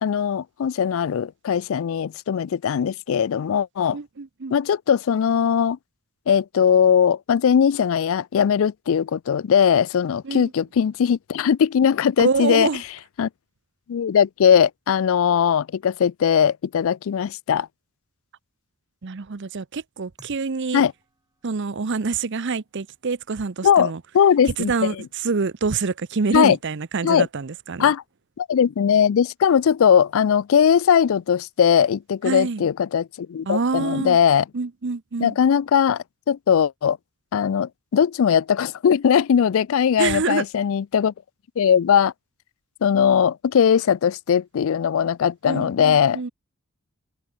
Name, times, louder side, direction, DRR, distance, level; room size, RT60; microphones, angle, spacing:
voice 1, 0.0-4.0 4.5-5.8 6.3-12.7 13.2-13.3 13.9-17.7 20.7-20.9 23.6-24.7 26.3-26.6 27.0-27.3 27.8-28.0 28.4-34.4 35.2-37.0 37.3-41.1 41.6-42.1 42.8-46.2, left 8 dB, 60° left, 0.3 m, -19 dB
voice 2, 3.9-4.6 10.2-10.5 12.2-12.8 19.0-20.8 21.4-24.0 24.6-27.9 32.2-32.7 33.5-34.2 34.5-35.4 40.0-40.5 45.4-46.3, right 4 dB, 55° right, 0.7 m, -26 dB
sound 1, 20.2-29.0, right 2 dB, 15° right, 4.8 m, -63 dB
head